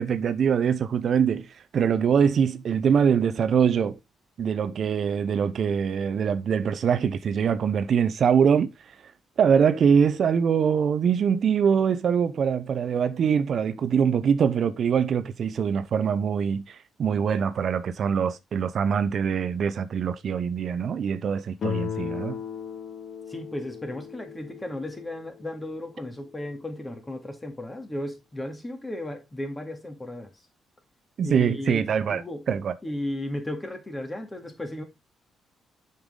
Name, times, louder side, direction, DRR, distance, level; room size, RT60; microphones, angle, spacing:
voice 1, 0.0-1.5 1.7-4.0 4.4-8.7 9.4-22.4 31.2-32.2 32.5-32.7, right 7 dB, 55° right, 0.6 m, -23 dB
Guitar, 21.6-26.4, left 7 dB, 55° left, 1.0 m, -36 dB
voice 2, 23.3-30.3 31.2-31.8 32.1-32.4 32.8-34.8, left 1 dB, 15° left, 2.2 m, -35 dB
7.1 x 5.5 x 3.7 m
cardioid pair, 90°, 0 cm